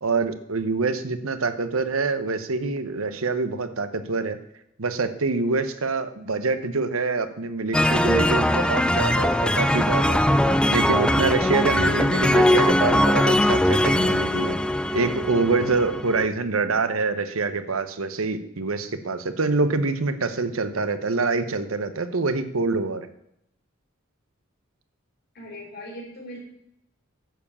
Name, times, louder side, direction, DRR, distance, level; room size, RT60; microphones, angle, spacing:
voice 1, 0.0-4.4 4.8-10.2 10.7-14.5 14.9-23.1, right 3 dB, 90° right, 10 dB, 1.0 m, -25 dB
sound 1, 7.7-16.3, left 1 dB, 5° left, 0.4 m, -21 dB
voice 2, 25.3-26.4, equal, 50° left, -1 dB, 4.1 m, -39 dB
10.5 x 7.3 x 7.1 m, 0.76 s
head